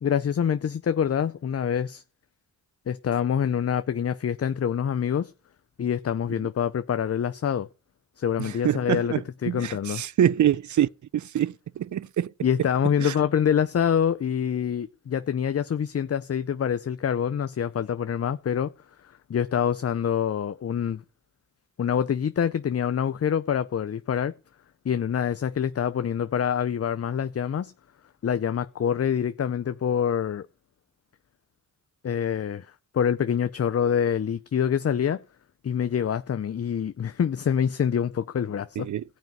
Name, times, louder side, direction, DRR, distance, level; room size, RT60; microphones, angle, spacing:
voice 1, 0.0-2.0 2.9-5.3 5.8-7.7 8.2-10.0 12.4-18.7 19.3-21.0 21.8-24.3 24.8-27.7 28.2-30.5 32.0-32.7 32.9-35.2 35.6-38.9, left 8 dB, 40° left, 0.6 m, -26 dB
voice 2, 8.4-12.3 13.0-13.1 38.8-39.0, right 10 dB, 55° right, 0.5 m, -26 dB
14.5 x 5.2 x 9.4 m
cardioid pair, 50°, 36 cm